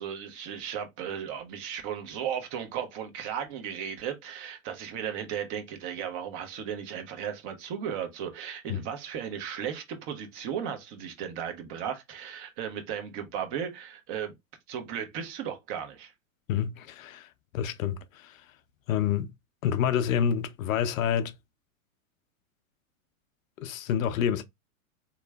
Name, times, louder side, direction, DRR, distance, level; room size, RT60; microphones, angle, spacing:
voice 1, 0.0-14.3 14.7-16.1, right 8 dB, 45° right, 1.1 m, -35 dB
voice 2, 16.5-17.3 17.5-18.4 18.9-19.3 19.6-21.3 23.6-24.4, left 8 dB, 70° left, 0.6 m, -28 dB
3.6 x 2.9 x 2.2 m
hypercardioid pair, 100°, 42 cm